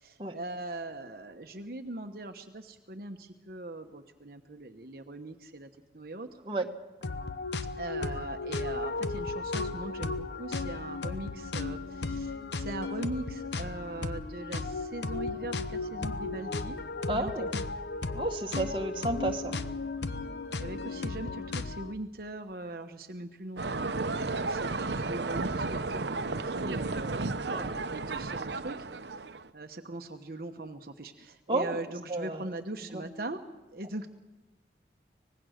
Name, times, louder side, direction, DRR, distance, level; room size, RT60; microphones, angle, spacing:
voice 1, 0.0-6.3 7.8-16.8 17.1-17.7 20.6-27.3 27.5-28.9 29.5-33.4 33.7-34.1, right 2 dB, 55° right, 4 dB, 1.1 m, -40 dB
sound 1, 7.0-21.9, left 3 dB, 70° left, 1.0 m, -35 dB
voice 2, 17.1-17.5 18.1-19.6 27.5-27.7 31.5-31.8 32.1-32.4 32.9-33.0, right 2 dB, 30° right, 2 dB, 1.6 m, -32 dB
sound 2, 23.6-29.5, right 3 dB, 75° right, 0.9 m, -33 dB
25.0 x 19.5 x 6.5 m, 1.1 s
head